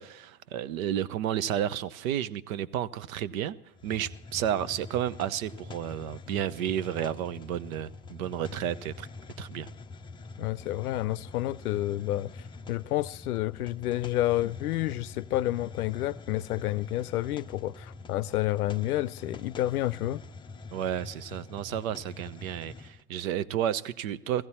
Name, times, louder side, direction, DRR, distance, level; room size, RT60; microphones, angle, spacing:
voice 1, 0.0-3.6 3.8-9.1 9.4-9.7 20.7-24.5, right 10 dB, 70° right, 0.8 m, -32 dB
Hiss, 3.7-23.0, left 3 dB, 10° left, 0.5 m, -45 dB
voice 2, 10.4-12.3 12.7-20.2, left 15 dB, 85° left, 0.6 m, -29 dB
16.0 x 15.5 x 4.3 m
hypercardioid pair, 105°, 43 cm